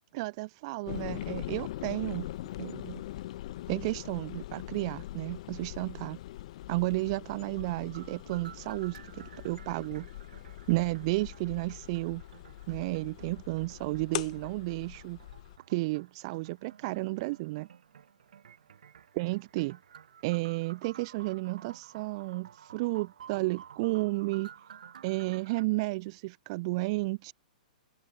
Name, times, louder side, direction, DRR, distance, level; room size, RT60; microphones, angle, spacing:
voice 1, 0.1-2.3 2.6-3.0 3.7-6.2 6.7-10.1 10.7-12.2 12.7-15.2 15.7-17.7 19.1-19.8 20.2-24.5 25.0-27.3, right 23 dB, 45° right, 0.5 m, -32 dB
sound 1, 0.9-15.6, left 15 dB, 55° left, 0.5 m, -42 dB
sound 2, 7.3-25.7, right 8 dB, 70° right, 2.0 m, -53 dB
open air
hypercardioid pair, 120°, 4 cm